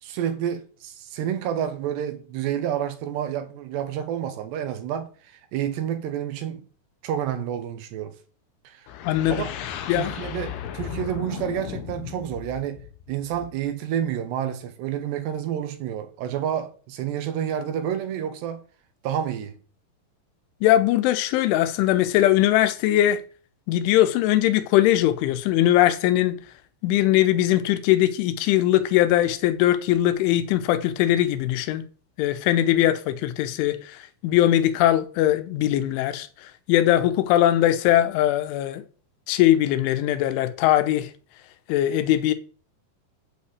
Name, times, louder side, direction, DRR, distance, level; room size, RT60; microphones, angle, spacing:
voice 1, 0.0-6.6 7.0-8.1 8.6-8.9 9.3-9.5 9.9-18.6 19.0-19.6, right 9 dB, 70° right, 3.3 m, -29 dB
sound 1, 8.9-13.7, left 10 dB, 70° left, 2.7 m, -36 dB
voice 2, 9.1-9.4 9.9-10.1 20.6-23.2 23.7-26.4 26.8-31.8 32.2-34.0 34.2-36.3 36.7-38.8 39.3-41.1 41.7-42.3, left 13 dB, 90° left, 3.3 m, -20 dB
8.5 x 5.7 x 8.1 m
omnidirectional pair, 5.4 m